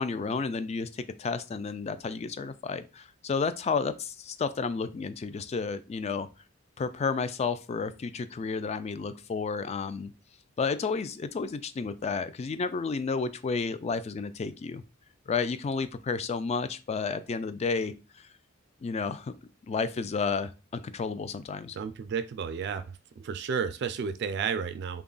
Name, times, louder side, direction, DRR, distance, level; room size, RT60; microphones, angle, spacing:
voice 1, 0.0-6.3 6.8-10.1 10.6-14.8 15.3-18.3 18.8-19.3 19.7-21.8, left 5 dB, 30° left, 13 dB, 0.3 m, -31 dB
voice 2, 21.8-22.8 23.2-25.0, right 6 dB, 55° right, 11 dB, 0.3 m, -32 dB
3.5 x 2.3 x 3.8 m, 0.30 s
head